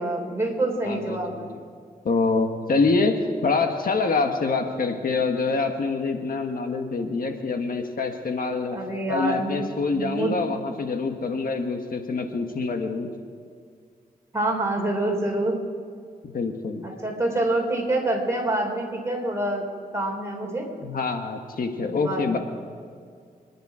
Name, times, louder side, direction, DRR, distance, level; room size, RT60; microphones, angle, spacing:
voice 1, 0.0-1.5 8.7-9.7 9.9-10.4 14.3-15.6 16.8-19.7 19.9-20.7 21.8-22.4, right 2 dB, 15° right, 0 dB, 3.8 m, -26 dB
voice 2, 0.9-1.6 2.0-8.8 9.1-13.1 16.2-16.9 20.8-22.4, left 4 dB, 65° left, 5 dB, 1.5 m, -26 dB
28.0 x 10.0 x 4.9 m, 2.2 s
wide cardioid pair, 90°, 16 cm